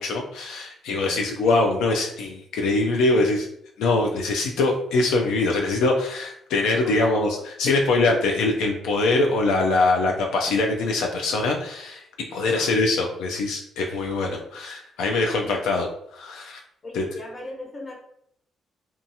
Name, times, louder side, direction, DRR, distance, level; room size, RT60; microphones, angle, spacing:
voice 1, 0.0-3.5 3.8-12.0 12.3-16.6 16.9-17.0, left 2 dB, 90° left, 1 dB, 0.4 m, -23 dB
voice 2, 0.8-1.4 6.8-7.2 12.4-12.8 14.4-14.5 15.4-15.5 16.8-17.9, left 1 dB, 35° left, -2 dB, 1.0 m, -39 dB
2.7 x 2.3 x 2.6 m, 0.71 s
cardioid pair, 90°, 0 cm